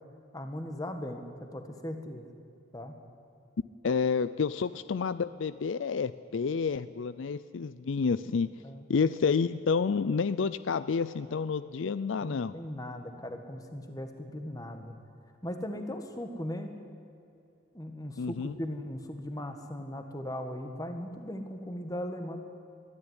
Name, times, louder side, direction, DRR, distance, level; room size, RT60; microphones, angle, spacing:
voice 1, 0.3-2.3 2.7-2.9 8.6-8.8 12.2-14.9 15.4-16.7 17.7-22.4, left 1 dB, 20° left, 6 dB, 1.7 m, -38 dB
voice 2, 3.8-8.5 8.9-12.5 18.2-18.5, left 5 dB, 65° left, 15 dB, 0.4 m, -29 dB
22.0 x 13.5 x 9.8 m, 2.6 s
head